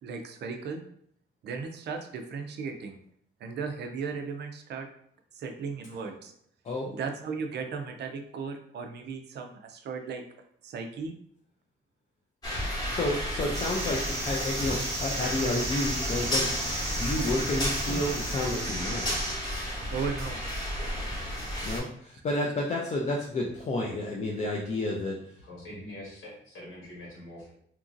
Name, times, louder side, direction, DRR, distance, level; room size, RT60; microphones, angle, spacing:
voice 1, 0.0-0.8 1.4-3.0 3.4-4.9 5.3-6.3 6.9-10.2 10.6-11.1 19.9-20.4, right 5 dB, 55° right, 5 dB, 0.4 m, -36 dB
sound 1, 12.4-21.8, equal, 20° left, 0.9 m, -32 dB
voice 2, 12.6-16.5 16.9-19.1 21.6-25.4, left 1 dB, 35° left, -2 dB, 0.3 m, -31 dB
sound 2, 13.5-19.3, right 1 dB, 15° right, 0.9 m, -35 dB
voice 3, 25.4-27.5, left 1 dB, 85° left, -4 dB, 1.4 m, -44 dB
2.9 x 2.5 x 2.4 m, 0.66 s
cardioid pair, 155°, 21 cm